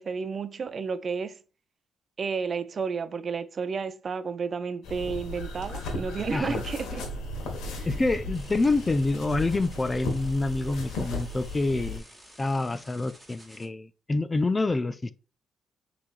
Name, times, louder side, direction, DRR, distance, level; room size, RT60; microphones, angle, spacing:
voice 1, 0.0-1.4 2.2-7.1 7.8-8.0, right 5 dB, 45° right, 0.4 m, -32 dB
sound 1, 4.8-12.0, left 2 dB, 85° left, 1.3 m, -35 dB
voice 2, 7.9-12.0 12.4-15.1, left 2 dB, 25° left, 0.4 m, -27 dB
sound 2, 8.3-13.7, right 1 dB, ahead, 1.6 m, -52 dB
6.1 x 3.3 x 2.4 m
cardioid pair, 90°, 0 cm